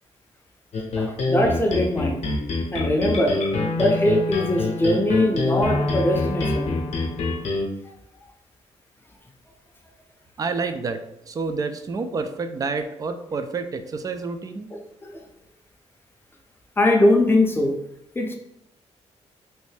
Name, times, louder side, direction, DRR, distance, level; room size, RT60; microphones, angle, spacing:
sound 1, 0.7-7.7, left 3 dB, 70° left, 0.7 m, -25 dB
voice 1, 1.0-2.2 2.7-3.4 3.8-6.7 15.0-15.2 16.8-17.7 18.2-18.4, left 1 dB, 20° left, 2 dB, 0.5 m, -21 dB
voice 2, 10.4-14.7, right 4 dB, 30° right, 9 dB, 0.3 m, -29 dB
3.2 x 2.6 x 3.2 m, 0.80 s
cardioid pair, 100°, 12 cm